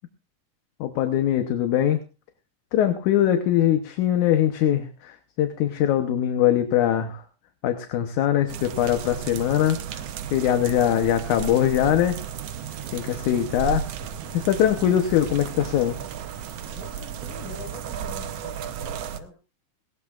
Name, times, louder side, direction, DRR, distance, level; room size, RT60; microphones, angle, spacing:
voice 1, 0.8-2.0 2.7-7.2 7.6-9.8 10.3-12.2 12.9-13.8 14.3-16.0, left 11 dB, 75° left, 7 dB, 2.3 m, -22 dB
sound 1, 8.5-19.2, right 8 dB, 65° right, 1.7 m, -34 dB
voice 2, 16.7-19.3, left 3 dB, 40° left, 2 dB, 5.9 m, -44 dB
19.5 x 18.5 x 2.5 m, 0.31 s
omnidirectional pair, 3.6 m